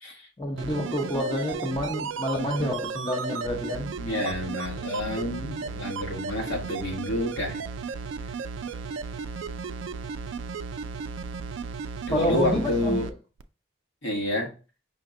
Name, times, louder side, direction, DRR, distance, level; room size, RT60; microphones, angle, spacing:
voice 1, 0.4-4.0 12.1-13.1, left 1 dB, 25° left, 0.7 m, -28 dB
sound 1, 0.6-13.1 13.4-13.5, right 5 dB, 70° right, 0.3 m, -35 dB
voice 2, 4.0-7.6 12.1-13.0 14.0-14.5, left 1 dB, 85° left, 1.3 m, -29 dB
5.6 x 2.1 x 3.7 m
head